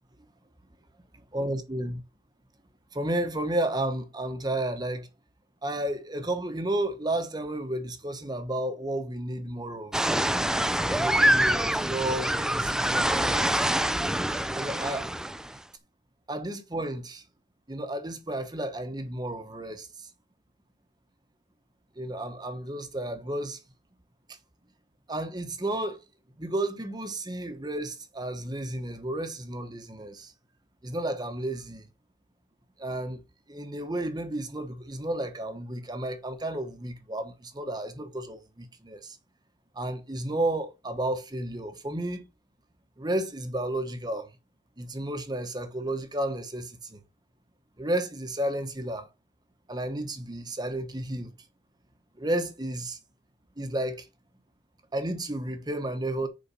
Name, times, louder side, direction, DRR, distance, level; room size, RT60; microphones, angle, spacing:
voice 1, 1.3-2.0 2.9-5.1 5.6-9.9 10.9-13.7 14.5-15.1 16.3-17.2 17.7-20.1 22.0-23.6 25.1-26.0 26.4-30.3 30.8-31.9 32.8-33.2 33.5-39.2 39.8-42.2 43.0-44.3 44.8-47.0 47.8-49.1 49.7-51.3 52.2-53.0 53.6-54.1 54.9-56.3, right 1 dB, 20° right, 1.0 m, -32 dB
sound 1, 9.9-15.6, right 1 dB, 5° right, 0.3 m, -25 dB
7.1 x 5.0 x 5.2 m
head